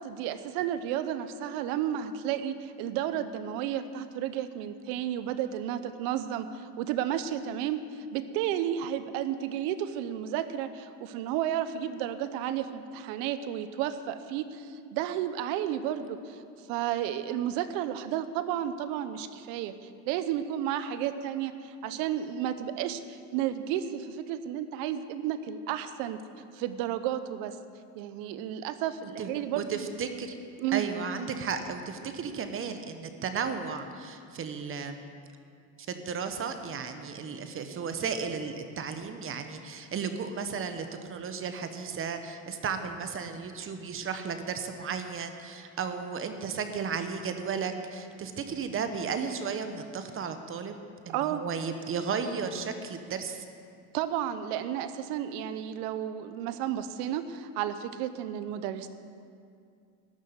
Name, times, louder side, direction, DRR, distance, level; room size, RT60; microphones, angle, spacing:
voice 1, 0.0-16.4 16.7-26.2 26.5-27.5 28.0-29.8 30.6-30.9 51.1-51.4 53.9-58.9, right 10 dB, 75° right, 12 dB, 0.9 m, -32 dB
voice 2, 29.6-30.3 30.7-35.0 35.9-50.8 51.1-53.4, right 6 dB, 35° right, 8 dB, 1.1 m, -34 dB
12.5 x 6.4 x 9.5 m, 2.3 s
supercardioid pair, 110°, 35 cm